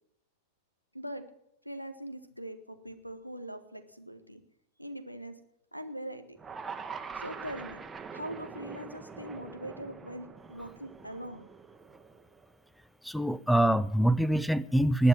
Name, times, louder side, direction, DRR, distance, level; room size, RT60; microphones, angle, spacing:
voice 1, 0.9-1.2 1.6-4.4 4.8-5.3 5.7-6.4 7.1-7.8 8.1-11.5, right 1 dB, 90° left, 11 dB, 1.4 m, -42 dB
sound 1, 6.4-12.6, right 5 dB, 15° right, 1.2 m, -44 dB
voice 2, 13.0-15.1, right 1 dB, ahead, 19 dB, 0.5 m, -24 dB
20.0 x 6.7 x 7.6 m, 0.77 s
figure-of-eight pair, 90°, 0 cm